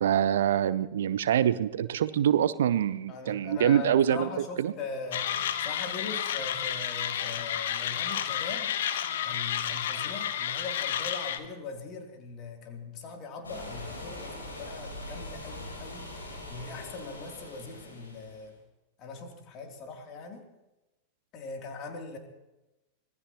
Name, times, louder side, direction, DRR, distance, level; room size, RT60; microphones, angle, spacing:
voice 1, 0.0-4.3 4.6-4.7, right 10 dB, 60° right, 17 dB, 0.6 m, -25 dB
voice 2, 3.1-8.7 9.2-16.1 16.5-18.6 19.0-20.4 21.3-22.2, left 4 dB, 35° left, 2 dB, 3.1 m, -40 dB
Mechanisms, 5.1-11.4, left 10 dB, 60° left, 1.2 m, -31 dB
sound 1, 13.4-18.5, left 1 dB, 75° left, 6.5 m, -42 dB
25.5 x 19.0 x 3.0 m, 0.99 s
figure-of-eight pair, 90°, 0 cm